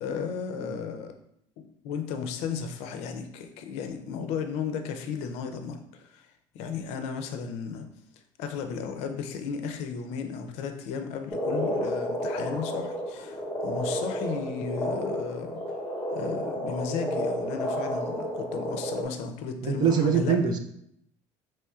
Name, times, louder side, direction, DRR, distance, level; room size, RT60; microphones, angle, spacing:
voice 1, 0.0-1.1 1.6-6.2 6.5-7.9 8.4-15.6 16.1-20.4, left 6 dB, 75° left, 6 dB, 0.5 m, -34 dB
Frog, 11.3-19.0, equal, 15° left, 0.8 m, -31 dB
voice 2, 19.6-20.6, right 7 dB, 40° right, 6 dB, 0.4 m, -24 dB
4.3 x 3.1 x 2.3 m, 0.73 s
cardioid pair, 155°, 11 cm